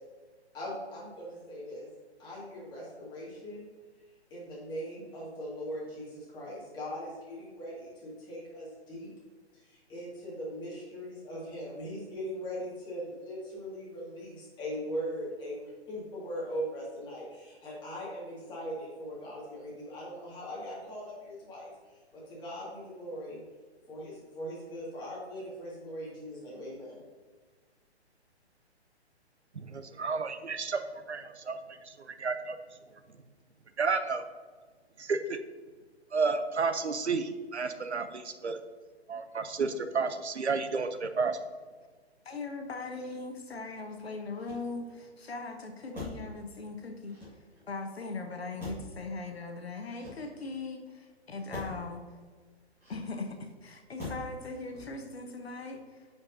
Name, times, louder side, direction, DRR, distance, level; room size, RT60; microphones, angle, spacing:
voice 1, 0.5-1.9 2.2-3.7 4.3-9.1 9.6-21.7 22.1-23.4 23.9-27.0, equal, 15° left, -6 dB, 2.1 m, -40 dB
voice 2, 29.5-30.8 31.1-31.6 31.8-32.6 33.8-34.2 35.0-35.4 36.1-38.6 39.1-41.4, right 4 dB, 80° right, 9 dB, 0.7 m, -31 dB
voice 3, 42.2-47.2 47.7-52.0 52.9-56.0, left 3 dB, 65° left, 4 dB, 1.1 m, -39 dB
Motor vehicle (road), 44.3-45.1 45.9-46.4 47.0-47.7 48.6-49.0 49.8-50.6 51.5-51.9 52.8-53.4 54.0-54.4 54.7-55.2, left 2 dB, 5° right, 1.8 m, -44 dB
9.7 x 5.1 x 2.7 m, 1.5 s
figure-of-eight pair, 130°, 34 cm